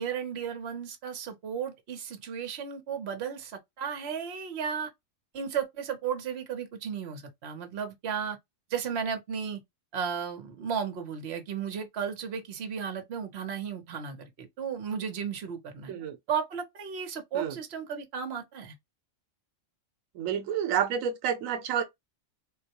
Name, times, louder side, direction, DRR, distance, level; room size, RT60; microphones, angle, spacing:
voice 1, 0.0-4.9 5.3-8.4 8.7-9.6 9.9-15.9 16.3-18.7, right 7 dB, 55° right, 1.1 m, -34 dB
voice 2, 20.1-21.8, right 8 dB, 90° right, 1.0 m, -29 dB
3.8 x 2.2 x 2.8 m
omnidirectional pair, 1.4 m